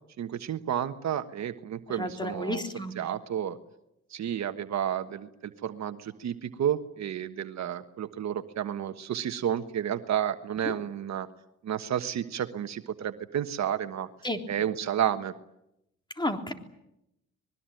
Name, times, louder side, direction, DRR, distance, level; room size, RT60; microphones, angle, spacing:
voice 1, 0.2-2.6 2.9-3.6 4.1-11.3 11.6-14.1 14.5-15.3, right 9 dB, 65° right, 9 dB, 1.4 m, -31 dB
voice 2, 2.0-2.9 10.7-10.8 14.2-14.4 16.2-16.5, left 1 dB, 15° left, 5 dB, 3.5 m, -31 dB
26.0 x 21.5 x 9.2 m, 0.84 s
cardioid pair, 90°, 30 cm